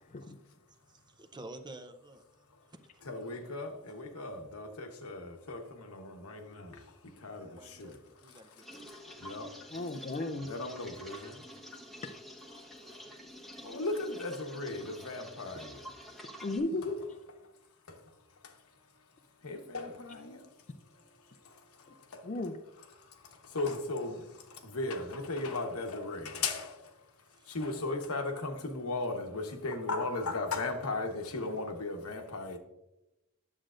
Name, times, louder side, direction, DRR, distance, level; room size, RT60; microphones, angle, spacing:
voice 1, 0.9-2.2 2.7-3.1 7.3-8.8 27.4-27.6, right 2 dB, 20° right, 0.6 m, -50 dB
voice 2, 3.0-6.8 7.2-7.5 7.8-7.9 9.2-9.5 10.5-11.4 13.6-15.7 19.4-20.4 23.5-24.2 24.6-26.7 27.5-32.6, left 2 dB, 85° left, 1.1 m, -36 dB
sound 1, 8.6-16.6, equal, ahead, 0.9 m, -49 dB
voice 3, 9.7-10.5 12.0-12.1 16.4-17.2 22.2-22.5, left 2 dB, 35° left, 0.4 m, -35 dB
10.0 x 7.5 x 2.5 m
head